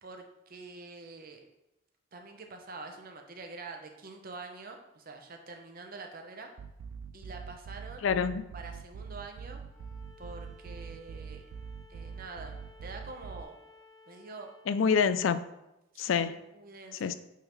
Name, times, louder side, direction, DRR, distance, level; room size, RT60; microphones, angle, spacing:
voice 1, 0.0-1.5 2.1-6.5 7.1-8.1 8.5-9.6 10.2-11.4 11.9-13.6 14.1-14.5 15.9-17.1, right 3 dB, 50° right, 4 dB, 0.8 m, -46 dB
sound 1, 6.6-13.4, right 6 dB, 85° right, 0.3 m, -44 dB
voice 2, 8.0-8.5 14.7-15.4 16.0-16.4 17.0-17.1, left 6 dB, 80° left, 13 dB, 0.4 m, -26 dB
Bowed string instrument, 9.7-14.7, left 2 dB, ahead, 0.8 m, -57 dB
8.4 x 3.7 x 3.1 m, 0.92 s
head